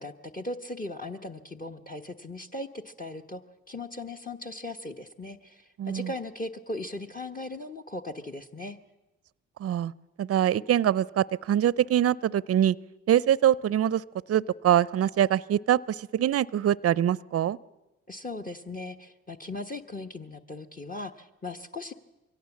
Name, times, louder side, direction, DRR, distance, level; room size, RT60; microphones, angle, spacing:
voice 1, 0.0-3.4 3.7-8.8 18.1-21.9, left 2 dB, 25° left, 9 dB, 1.2 m, -38 dB
voice 2, 5.8-6.1 9.6-9.9 10.2-12.8 13.1-14.0 14.3-17.6, right 11 dB, 45° right, 21 dB, 0.6 m, -24 dB
23.0 x 16.5 x 7.3 m, 1.0 s
supercardioid pair, 55°, 32 cm